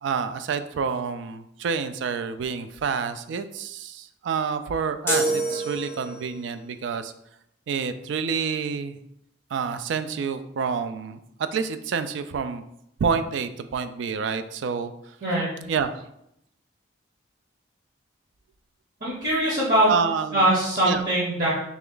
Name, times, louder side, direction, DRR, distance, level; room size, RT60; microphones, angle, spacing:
voice 1, 0.0-7.1 7.7-9.0 9.5-11.2 11.5-12.7 13.0-14.9 15.7-15.9 19.9-20.5 20.8-21.0, right 6 dB, 70° right, 11 dB, 0.3 m, -28 dB
sound 1, 5.1-6.4, right 1 dB, 10° left, 0.6 m, -26 dB
voice 2, 15.2-15.5 19.0-19.9 20.3-21.5, right 1 dB, 50° right, -6 dB, 1.0 m, -22 dB
3.4 x 3.0 x 3.7 m, 0.78 s
head